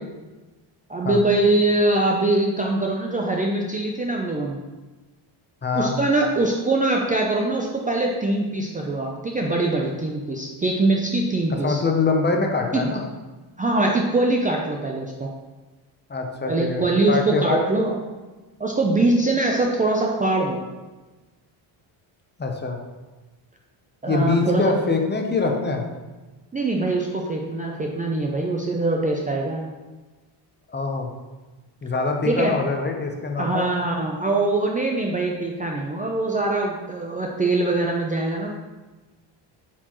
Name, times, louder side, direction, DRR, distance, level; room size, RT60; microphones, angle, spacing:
voice 1, 0.9-4.6 5.7-11.8 12.7-12.8 13.6-15.3 16.5-17.9 18.6-20.6 24.0-24.7 26.5-29.6 32.2-32.5 33.4-38.5, right 2 dB, 15° right, 0 dB, 0.5 m, -23 dB
voice 2, 5.6-5.9 11.6-13.0 16.1-17.6 22.4-22.8 24.1-25.8 30.7-31.1 31.8-33.6, left 4 dB, 20° left, 3 dB, 0.7 m, -24 dB
7.9 x 4.5 x 3.0 m, 1.2 s
cardioid pair, 120°, 49 cm